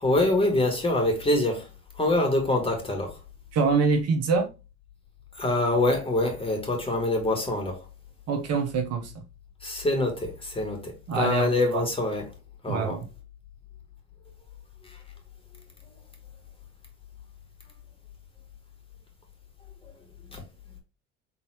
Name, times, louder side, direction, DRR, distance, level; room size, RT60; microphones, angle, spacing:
voice 1, 0.0-1.7 2.0-3.1 5.4-7.8 9.6-12.2 12.6-13.0 20.3-20.4, left 2 dB, 15° left, 2.1 m, -25 dB
voice 2, 3.5-4.5 8.3-9.2 11.1-11.8 12.7-13.1, right 4 dB, 50° right, 1.0 m, -25 dB
3.9 x 3.9 x 3.0 m
hypercardioid pair, 70°, 32 cm